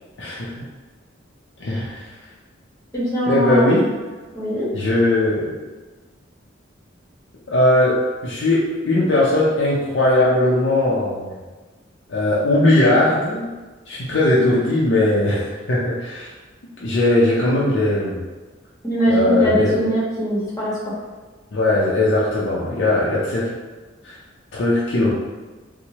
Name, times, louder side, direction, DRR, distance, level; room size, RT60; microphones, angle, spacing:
voice 1, 0.2-0.5 1.6-2.1 3.3-3.9 4.7-5.5 7.5-11.3 12.1-13.5 13.9-16.3 16.8-18.2 19.1-19.8 21.5-23.6 24.0-24.2 24.5-25.1, left 1 dB, 70° left, -6 dB, 0.6 m, -19 dB
voice 2, 2.9-3.8 4.3-4.7 18.8-20.9, equal, 20° left, -8 dB, 1.1 m, -21 dB
4.4 x 2.1 x 2.8 m, 1.3 s
head